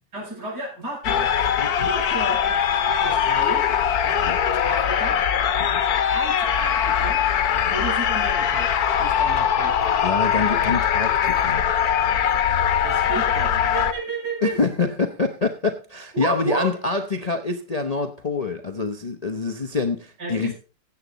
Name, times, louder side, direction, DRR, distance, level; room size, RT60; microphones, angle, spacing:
voice 1, 0.1-1.3 1.8-3.7 4.6-5.2 6.1-7.2 7.7-8.7 9.0-9.8 12.8-14.6 16.1-16.7 20.2-20.5, right 2 dB, 70° right, -5 dB, 6.4 m, -32 dB
sound 1, 1.0-13.9, left 8 dB, 65° left, 1.4 m, -21 dB
voice 2, 1.6-1.9 4.1-4.4 5.7-5.8 7.5-7.7 10.0-11.7 14.4-20.5, left 4 dB, 35° left, 6 dB, 0.7 m, -26 dB
15.5 x 8.3 x 4.0 m, 0.34 s
omnidirectional pair, 1.9 m